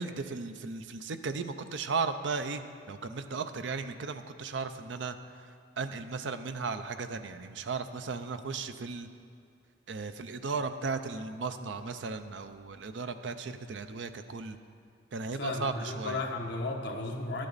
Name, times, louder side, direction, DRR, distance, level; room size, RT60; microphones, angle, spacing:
voice 1, 0.0-2.6 2.9-5.5 5.8-9.1 9.9-14.6 15.1-16.2, right 4 dB, 75° right, 9 dB, 0.5 m, -36 dB
voice 2, 15.3-17.5, left 2 dB, 65° left, 1 dB, 1.2 m, -34 dB
11.5 x 9.9 x 4.1 m, 2.4 s
head